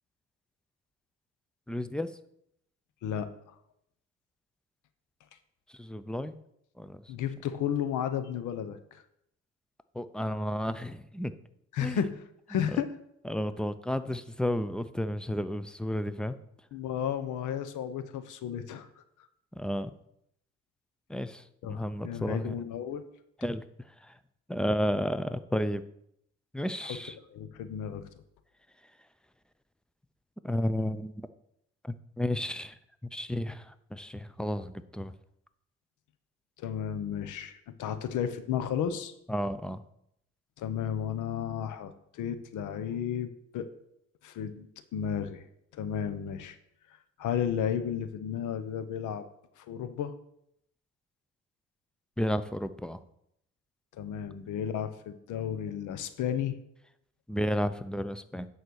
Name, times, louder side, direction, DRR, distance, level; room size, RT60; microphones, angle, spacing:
voice 1, 1.7-2.1 5.8-6.3 6.8-7.0 9.9-11.3 11.8-12.1 13.3-16.3 19.6-19.9 21.1-22.6 23.4-23.6 24.0-24.1 24.5-25.8 26.5-27.1 30.4-31.3 31.8-32.7 33.1-35.1 39.3-39.8 52.2-53.0 57.3-58.5, equal, 5° left, 12 dB, 0.5 m, -32 dB
voice 2, 7.1-9.0 11.7-12.2 12.5-12.9 16.7-18.9 21.6-23.0 27.3-28.1 36.6-39.1 40.6-43.7 44.2-45.4 45.7-46.6 47.2-49.2 49.6-50.1 54.0-56.6, left 9 dB, 80° left, 11 dB, 0.9 m, -33 dB
9.3 x 4.2 x 6.4 m, 0.75 s
cardioid pair, 90°, 30 cm